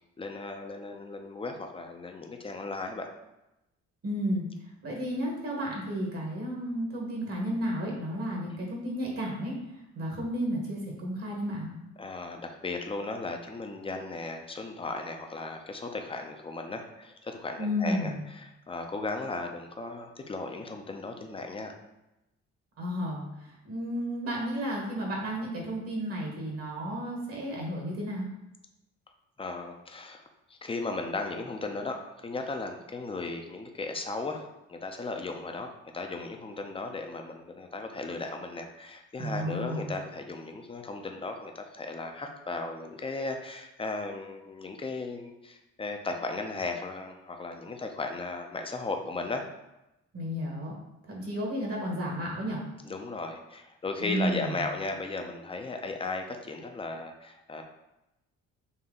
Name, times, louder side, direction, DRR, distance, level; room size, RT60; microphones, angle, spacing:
voice 1, 0.2-3.1 12.0-21.7 29.4-30.2 30.5-49.5 52.8-57.6, left 3 dB, 20° left, 4 dB, 0.6 m, -36 dB
voice 2, 4.0-4.5 4.8-9.5 9.9-11.7 17.6-18.2 22.8-28.3 39.2-39.9 50.1-50.8 51.1-52.6 54.0-54.6, equal, 50° right, -1 dB, 1.3 m, -32 dB
4.2 x 2.8 x 3.6 m, 0.92 s
cardioid pair, 90°, 30 cm